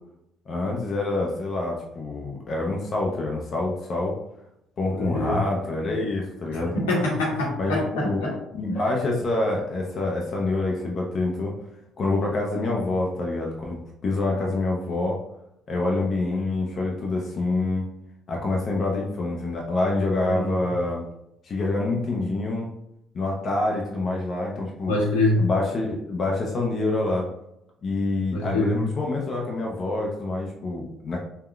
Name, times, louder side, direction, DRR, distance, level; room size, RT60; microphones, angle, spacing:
voice 1, 0.5-4.2 4.8-6.8 7.6-8.2 8.5-11.5 12.0-15.2 15.7-17.9 18.3-21.0 21.4-22.7 23.1-24.9 25.4-27.3 27.8-31.2, left 2 dB, 50° left, -1 dB, 0.5 m, -26 dB
voice 2, 5.0-5.3 6.5-8.4 20.3-20.5 24.9-25.4 28.3-28.8, left 2 dB, 90° left, -4 dB, 0.9 m, -25 dB
3.6 x 2.1 x 2.3 m, 0.82 s
hypercardioid pair, 60°, 0 cm